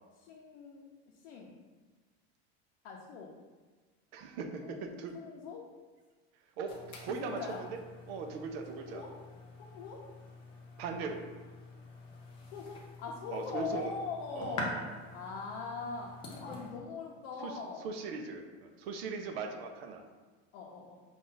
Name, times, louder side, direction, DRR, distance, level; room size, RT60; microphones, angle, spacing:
voice 1, 0.2-0.8 1.2-1.5 2.8-3.3 4.6-5.6 7.1-7.6 8.7-9.1 9.6-10.0 12.5-14.7 15.1-16.1 16.4-17.9 20.5-21.0, left 5 dB, 65° left, -3 dB, 0.7 m, -42 dB
voice 2, 4.1-5.2 6.6-7.8 8.1-9.1 10.8-11.2 13.3-13.9 14.3-15.0 17.4-20.0, right 4 dB, 65° right, 4 dB, 0.7 m, -39 dB
sound 1, 6.7-16.7, left 2 dB, 15° left, 0.3 m, -46 dB
5.3 x 2.5 x 3.8 m, 1.4 s
supercardioid pair, 175°, 33 cm